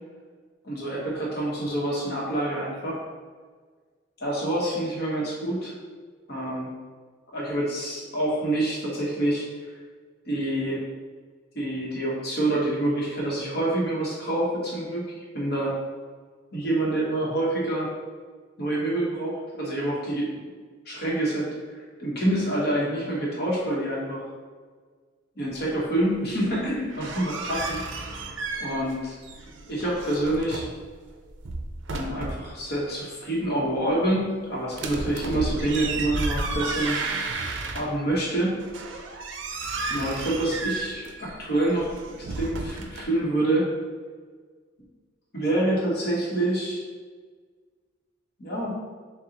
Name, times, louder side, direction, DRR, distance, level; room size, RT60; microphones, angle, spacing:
voice 1, 0.6-3.0 4.2-5.7 6.3-6.7 7.3-9.4 10.2-10.8 11.5-15.7 16.5-17.9 18.6-20.3 20.9-21.5 22.0-24.2 25.4-27.8 28.6-29.1 29.7-30.7 31.9-37.0 37.7-38.6 39.9-43.7 45.3-46.8 48.4-48.7, right 1 dB, 50° left, -4 dB, 1.2 m, -27 dB
sound 1, 26.7-29.0 29.2-30.8 31.3-32.5 34.7-38.2 38.6-43.0, right 3 dB, 60° right, 0.5 m, -32 dB
6.5 x 2.4 x 2.9 m, 1.5 s
head